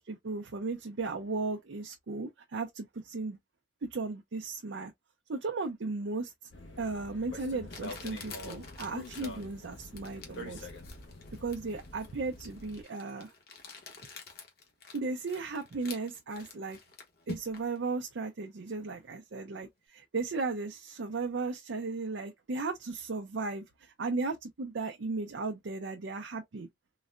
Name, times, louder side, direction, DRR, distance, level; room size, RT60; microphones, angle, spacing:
voice 1, 0.0-3.4 3.9-4.9 5.3-6.3 6.8-10.7 11.4-13.3 14.9-16.8 17.3-26.7, right 3 dB, 85° right, 0.6 m, -36 dB
sound 1, 6.5-12.8, left 2 dB, 85° left, 0.9 m, -46 dB
Crumpling crinkling, 6.8-6.9 7.7-17.8, left 4 dB, 55° left, 1.0 m, -48 dB
3.9 x 2.1 x 2.4 m
head